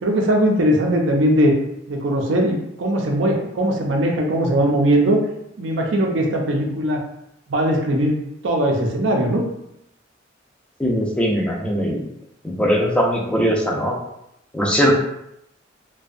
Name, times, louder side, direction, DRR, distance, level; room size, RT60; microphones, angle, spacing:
voice 1, 0.0-1.5 1.9-5.2 5.6-7.0 7.5-8.2 8.4-9.4, right 1 dB, 70° right, 1 dB, 0.5 m, -19 dB
voice 2, 10.8-12.0 12.4-13.9 14.5-15.0, equal, 5° left, -2 dB, 0.4 m, -20 dB
2.6 x 2.1 x 2.4 m, 0.80 s
head